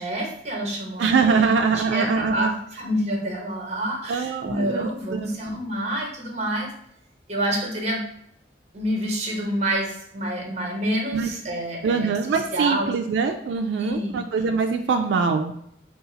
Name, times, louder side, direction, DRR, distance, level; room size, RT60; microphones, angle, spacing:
voice 1, 0.0-1.5 1.8-6.7 7.3-8.0 8.7-12.1 12.5-12.9 13.8-14.2, right 1 dB, 40° right, 0 dB, 0.9 m, -28 dB
voice 2, 1.0-2.5 4.1-5.4 11.1-11.3 11.8-15.5, right 5 dB, 85° right, 5 dB, 0.3 m, -23 dB
4.0 x 2.4 x 3.8 m, 0.72 s
head